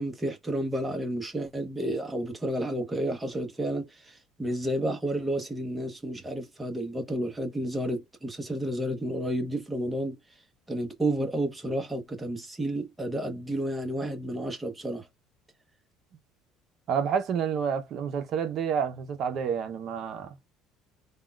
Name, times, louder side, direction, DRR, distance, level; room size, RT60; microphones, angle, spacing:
voice 1, 0.0-10.2 10.7-15.1, right 1 dB, 15° right, 1.1 m, -31 dB
voice 2, 16.9-20.4, right 7 dB, 55° right, 0.8 m, -29 dB
3.5 x 2.3 x 2.4 m
supercardioid pair, 95°, 0 cm